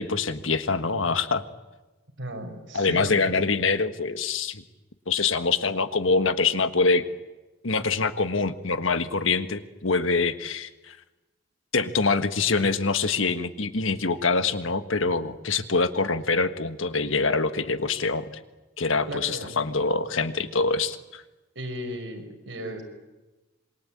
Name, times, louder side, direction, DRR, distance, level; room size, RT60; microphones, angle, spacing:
voice 1, 0.0-1.4 2.7-4.6 5.1-7.0 7.6-11.0 11.7-18.2 18.8-21.2, left 4 dB, 80° left, 10 dB, 1.5 m, -25 dB
voice 2, 2.2-3.5 19.1-19.6 21.6-22.8, right 1 dB, 65° right, 4 dB, 5.3 m, -35 dB
27.0 x 22.5 x 8.8 m, 1.1 s
head